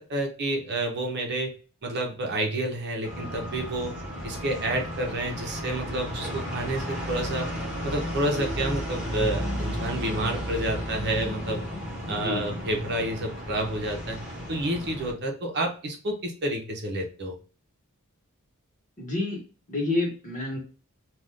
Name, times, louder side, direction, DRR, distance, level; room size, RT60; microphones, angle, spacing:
voice 1, 0.0-1.5 1.8-3.9 4.2-7.5 7.8-11.6 12.1-14.2 14.5-17.4, right 1 dB, 50° right, 2 dB, 0.7 m, -29 dB
sound 1, 3.0-15.1, equal, 5° right, 1.1 m, -33 dB
voice 2, 12.0-12.6 19.0-20.6, left 2 dB, 35° left, -2 dB, 1.2 m, -30 dB
2.5 x 2.3 x 3.4 m, 0.37 s
head